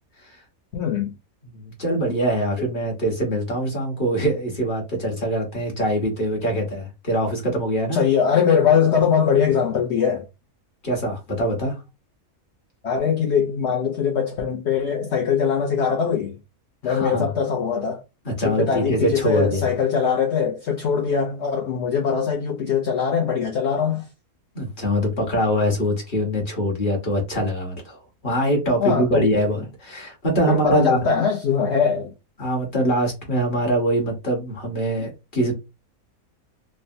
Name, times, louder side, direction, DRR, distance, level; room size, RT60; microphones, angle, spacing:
voice 1, 0.7-1.1 7.9-10.2 12.8-16.3 16.8-18.0 18.4-24.0 28.8-29.5 30.5-32.1, left 7 dB, 65° left, 0.7 m, -21 dB
voice 2, 1.5-8.0 10.8-11.8 16.8-17.3 18.2-19.7 24.5-31.0 32.4-35.5, right 1 dB, 40° left, 1.1 m, -23 dB
3.3 x 2.1 x 2.6 m
omnidirectional pair, 1.6 m